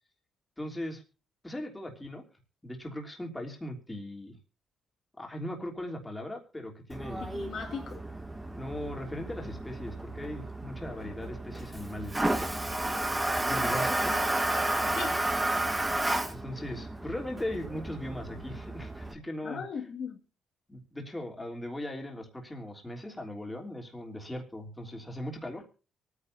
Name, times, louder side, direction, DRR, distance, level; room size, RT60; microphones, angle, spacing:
voice 1, 0.6-1.0 1.4-2.2 2.6-4.3 5.1-7.2 8.5-12.2 13.5-14.2 16.4-19.6 20.7-25.7, left 1 dB, 10° left, 3.3 m, -39 dB
Toilet flush, 6.9-19.1, right 1 dB, 15° right, 2.1 m, -32 dB
voice 2, 7.1-8.0 11.0-11.1 12.9-13.5 14.9-15.2 19.4-20.2, left 6 dB, 60° left, 1.9 m, -39 dB
24.0 x 9.7 x 2.7 m
cardioid pair, 90°, 0 cm